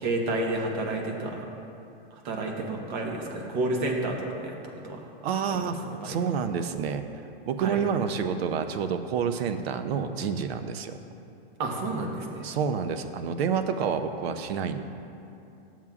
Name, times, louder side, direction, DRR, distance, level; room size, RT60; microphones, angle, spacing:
voice 1, 0.0-1.5 2.2-4.5 4.8-5.1 5.5-6.2 7.6-7.8 11.6-12.5, right 2 dB, 50° right, 2 dB, 1.1 m, -30 dB
voice 2, 5.2-11.0 12.4-14.8, right 6 dB, 75° right, 9 dB, 0.6 m, -29 dB
12.0 x 7.3 x 2.4 m, 2.7 s
supercardioid pair, 150°, 31 cm